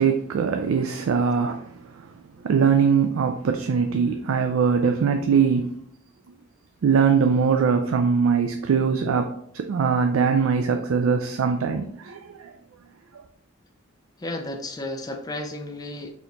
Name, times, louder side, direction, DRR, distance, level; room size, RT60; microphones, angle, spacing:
voice 1, 0.0-2.1 2.4-5.7 6.8-9.3 9.5-12.5, right 6 dB, 75° right, 0.4 m, -22 dB
voice 2, 14.2-16.1, left 1 dB, 20° left, 0.5 m, -33 dB
4.1 x 2.9 x 3.9 m
head